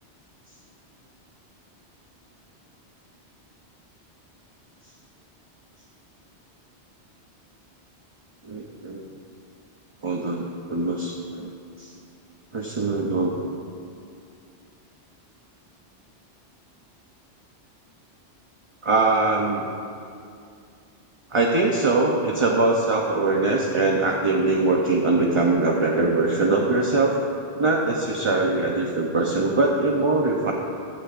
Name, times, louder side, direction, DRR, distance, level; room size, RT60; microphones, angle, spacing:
voice 1, 8.4-9.0 10.0-11.5 11.8-11.9 12.5-13.3 18.8-19.6 21.3-27.2 27.6-30.5, right 3 dB, 30° right, -1 dB, 0.7 m, -22 dB
16.0 x 12.0 x 2.5 m, 2.4 s
omnidirectional pair, 1.1 m